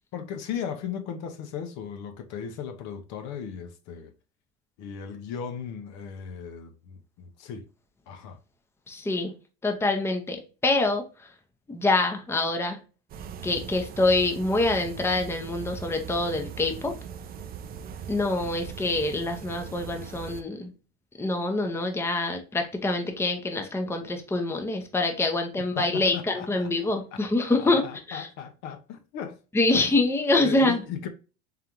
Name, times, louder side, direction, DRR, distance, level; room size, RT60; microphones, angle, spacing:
voice 1, 0.1-4.1 4.8-7.7 8.1-8.4 25.8-27.2 27.6-29.4 29.7-29.9 30.4-31.1, left 7 dB, 60° left, 0.7 m, -37 dB
voice 2, 8.9-9.3 9.6-11.3 11.7-12.8 13.4-16.9 18.1-20.7 21.2-28.3 29.5-30.8, left 2 dB, 10° left, 0.7 m, -25 dB
sound 1, 13.1-20.4, right 8 dB, 30° right, 0.4 m, -40 dB
3.8 x 3.3 x 2.9 m
supercardioid pair, 100°, 31 cm